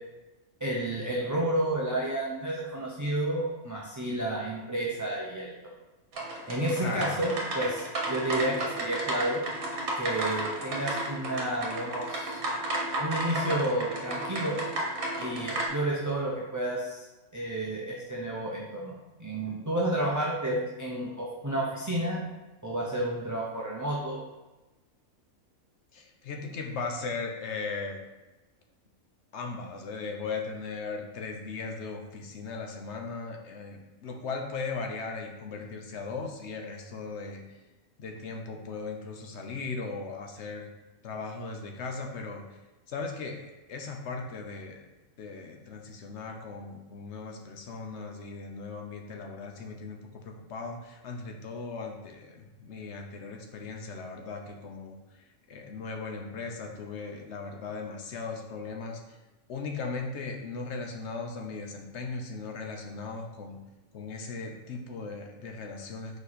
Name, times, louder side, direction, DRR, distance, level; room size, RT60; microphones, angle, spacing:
voice 1, 0.6-5.6 6.5-9.4 10.0-12.4 13.0-14.6 15.2-17.1 17.3-18.9 19.2-22.2 22.6-24.2, right 1 dB, 20° right, -4 dB, 0.6 m, -31 dB
sound 1, 6.1-15.7, right 1 dB, 85° right, 1.6 m, -33 dB
voice 2, 6.8-7.2 25.9-28.0 29.3-37.6 38.0-40.7 41.0-42.4 42.9-44.8 45.2-59.2 59.5-63.6 63.9-66.2, left 4 dB, 60° left, 3 dB, 1.0 m, -38 dB
4.9 x 4.7 x 4.2 m, 1.1 s
omnidirectional pair, 1.5 m